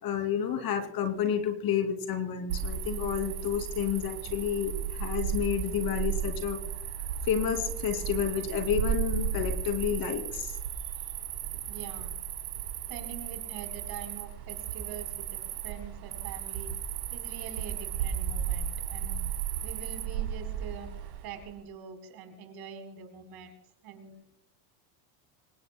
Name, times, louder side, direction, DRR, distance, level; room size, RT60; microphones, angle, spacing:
voice 1, 0.0-6.6 7.2-10.6, left 8 dB, 45° left, 6 dB, 2.8 m, -30 dB
Cricket, 2.5-21.4, right 8 dB, 85° right, 4.2 m, -34 dB
voice 2, 11.7-12.1 12.9-16.7 17.1-19.2 19.6-20.9 21.2-23.5 23.8-24.1, right 7 dB, 50° right, 6 dB, 4.1 m, -44 dB
26.0 x 20.5 x 2.2 m, 0.76 s
supercardioid pair, 100°, 48 cm